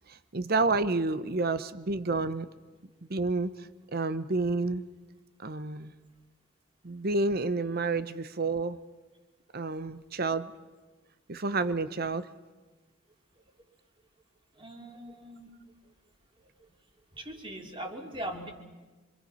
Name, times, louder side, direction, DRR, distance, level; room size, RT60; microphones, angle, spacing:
voice 1, 0.1-2.5 3.1-4.8 5.4-5.9 6.8-8.8 9.5-10.5 11.3-12.3, right 3 dB, 50° right, 14 dB, 0.9 m, -30 dB
voice 2, 14.5-15.5 15.8-15.9 16.4-16.7 17.1-18.5, right 1 dB, 25° right, 2 dB, 2.8 m, -41 dB
26.5 x 25.0 x 5.7 m, 1.3 s
head